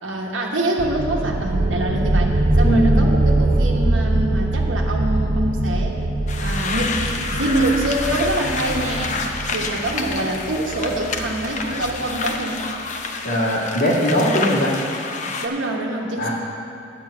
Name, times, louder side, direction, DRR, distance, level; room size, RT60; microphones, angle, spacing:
voice 1, 0.0-6.0 6.4-12.6 15.4-16.3, right 1 dB, 90° right, -1 dB, 1.1 m, -25 dB
sound 1, 0.8-12.2, right 1 dB, 45° right, 0.6 m, -22 dB
voice 2, 2.6-3.0 13.2-14.7 16.2-16.3, equal, 70° left, -11 dB, 2.0 m, -19 dB
sound 2, 6.3-15.5, left 4 dB, 40° left, 0.6 m, -29 dB
9.4 x 6.1 x 7.7 m, 2.5 s
head